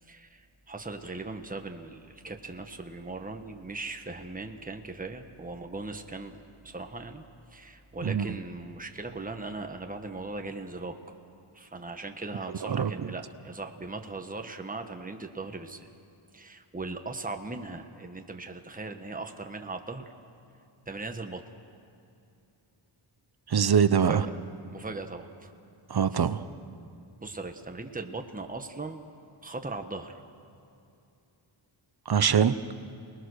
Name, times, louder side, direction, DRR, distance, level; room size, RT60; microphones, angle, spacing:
voice 1, 0.1-6.4 6.6-7.2 7.5-11.0 11.5-15.8 16.3-20.1 20.9-21.4 24.0-24.2 24.7-25.5 26.1-26.3 27.2-29.0 29.4-30.2, right 3 dB, 15° right, 5 dB, 1.3 m, -39 dB
voice 2, 8.0-8.4 12.6-13.1 23.5-24.3 25.9-26.4 32.1-32.5, right 7 dB, 50° right, 12 dB, 0.9 m, -24 dB
28.0 x 20.0 x 6.5 m, 2.6 s
wide cardioid pair, 100°, 49 cm